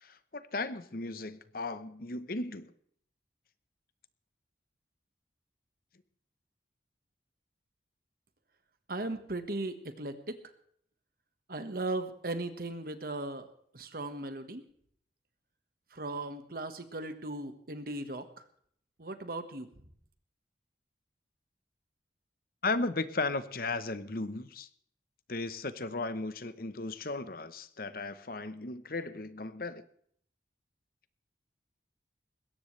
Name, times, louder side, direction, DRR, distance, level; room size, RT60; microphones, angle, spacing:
voice 1, 0.0-2.7 22.6-24.7 25.3-29.8, left 3 dB, 55° left, 13 dB, 0.9 m, -36 dB
voice 2, 8.9-10.4 11.5-13.5 13.7-14.6 15.9-18.4 19.0-19.7, right 2 dB, 55° right, 9 dB, 1.4 m, -37 dB
21.0 x 17.0 x 3.3 m, 0.63 s
head